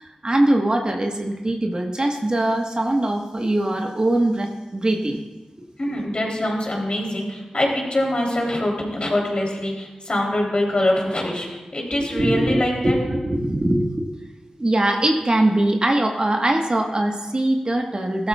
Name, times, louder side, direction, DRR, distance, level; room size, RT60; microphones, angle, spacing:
voice 1, 0.0-5.2 12.1-14.1 14.6-18.3, right 1 dB, 40° right, 2 dB, 1.4 m, -22 dB
voice 2, 5.8-13.0, left 1 dB, 45° left, -2 dB, 3.4 m, -24 dB
15.5 x 12.5 x 2.4 m, 1.1 s
cardioid pair, 45°, 2 cm